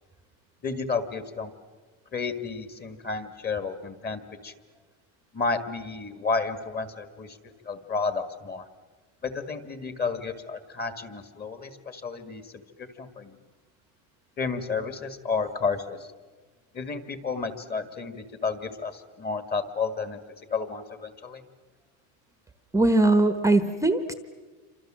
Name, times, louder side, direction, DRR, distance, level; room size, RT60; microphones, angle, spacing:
voice 1, 0.6-1.5 2.1-4.5 5.3-7.4 7.6-8.7 9.2-13.4 14.4-16.1 16.7-20.2 20.5-21.4, left 4 dB, 20° left, 10 dB, 2.0 m, -31 dB
voice 2, 22.7-24.1, right 2 dB, 5° right, 9 dB, 1.1 m, -21 dB
28.5 x 26.0 x 7.6 m, 1.3 s
cardioid pair, 150°, 42 cm